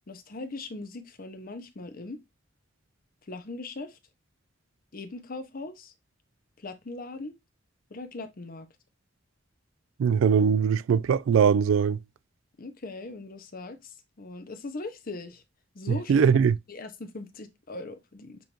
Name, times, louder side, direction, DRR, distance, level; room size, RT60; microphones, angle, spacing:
voice 1, 0.1-2.2 3.3-3.9 4.9-5.9 6.6-7.3 7.9-8.7 12.6-13.8 14.2-15.4 15.8-16.3 16.7-18.4, left 2 dB, 50° left, 0.8 m, -39 dB
voice 2, 10.0-12.0 15.9-16.6, right 7 dB, 85° right, 0.3 m, -21 dB
6.9 x 2.6 x 2.9 m
head